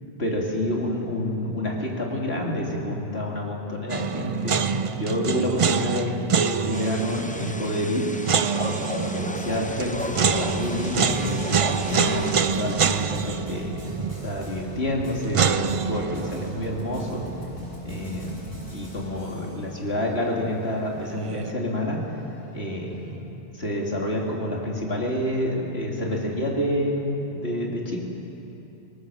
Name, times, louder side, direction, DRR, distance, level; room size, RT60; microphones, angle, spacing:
voice 1, 0.2-4.6 4.9-8.1 8.6-14.0 14.2-17.3 17.8-22.0 22.5-23.2 23.5-28.0, left 1 dB, 70° left, -2 dB, 3.2 m, -28 dB
sound 1, 3.9-18.9 19.2-19.3 21.0-21.5, right 6 dB, 45° right, 0.4 m, -27 dB
sound 2, 6.7-12.3, left 1 dB, 10° left, 0.5 m, -35 dB
sound 3, 9.3-23.1, left 1 dB, 30° left, 6.6 m, -42 dB
22.0 x 20.0 x 6.5 m, 3.0 s
omnidirectional pair, 1.1 m